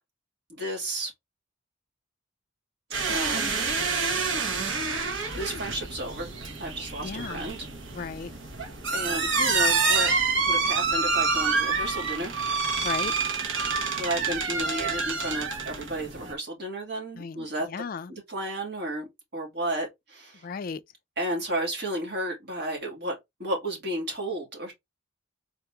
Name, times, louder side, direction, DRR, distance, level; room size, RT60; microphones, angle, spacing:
voice 1, 0.5-1.1 3.1-3.6 5.4-7.6 8.9-10.1 10.4-12.4 14.0-17.7 18.1-19.1 19.3-20.5 21.2-24.7, right 1 dB, 55° right, 2.3 m, -33 dB
sound 1, 2.9-16.3, right 4 dB, 70° right, 1.1 m, -27 dB
voice 2, 7.0-7.4 7.9-8.3 12.8-13.1 17.1-18.1 20.4-20.8, left 5 dB, 45° left, 0.3 m, -35 dB
4.2 x 3.0 x 3.3 m
head